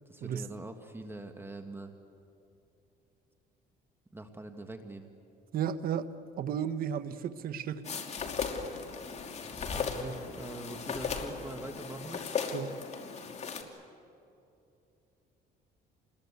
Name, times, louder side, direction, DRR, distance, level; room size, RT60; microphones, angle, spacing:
voice 1, 0.1-1.9 4.1-5.1 9.4-12.2, right 2 dB, 15° right, 1.7 m, -43 dB
voice 2, 5.5-6.0 6.4-7.8 12.5-12.7, right 9 dB, 60° right, 1.2 m, -33 dB
sound 1, 7.8-13.6, left 5 dB, 40° left, 2.8 m, -36 dB
28.5 x 21.0 x 8.3 m
cardioid pair, 110°, 17 cm